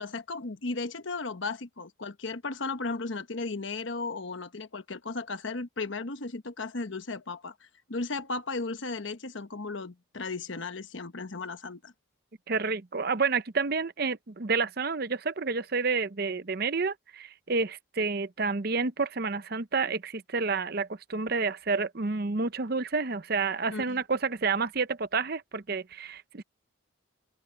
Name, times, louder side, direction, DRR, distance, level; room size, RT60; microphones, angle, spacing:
voice 1, 0.0-7.5 7.9-11.9 23.7-24.0, left 3 dB, 65° left, 1.1 m, -35 dB
voice 2, 12.5-26.4, right 4 dB, 50° right, 0.7 m, -29 dB
open air
head